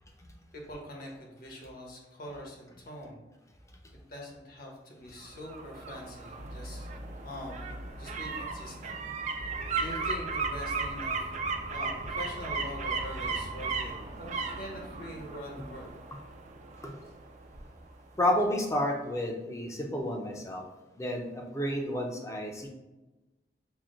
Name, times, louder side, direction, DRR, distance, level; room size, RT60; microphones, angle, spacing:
voice 1, 0.5-3.2 4.1-6.9 7.2-9.0 9.8-11.4 11.7-15.9, left 1 dB, 55° left, -1 dB, 1.1 m, -43 dB
sound 1, 5.2-18.0 18.4-18.5, right 4 dB, 40° right, 0.4 m, -36 dB
sound 2, 6.3-15.2, equal, 75° right, 1.0 m, -44 dB
voice 2, 18.2-20.6 20.9-22.7, left 1 dB, 20° left, 1 dB, 0.6 m, -31 dB
5.9 x 2.1 x 3.7 m, 1.1 s
head